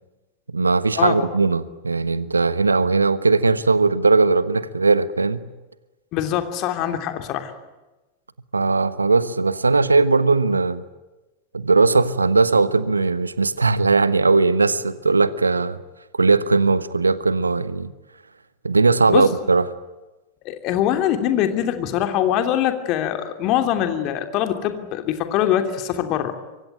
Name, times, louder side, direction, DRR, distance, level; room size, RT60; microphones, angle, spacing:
voice 1, 0.5-5.4 8.5-10.8 11.5-15.8 16.1-17.9 18.6-19.7, right 3 dB, 80° right, 1.2 m, -19 dB
voice 2, 6.1-7.5 19.1-19.3 20.4-26.3, left 11 dB, 40° left, 3.1 m, -23 dB
26.0 x 23.5 x 9.3 m
figure-of-eight pair, 90°, 0 cm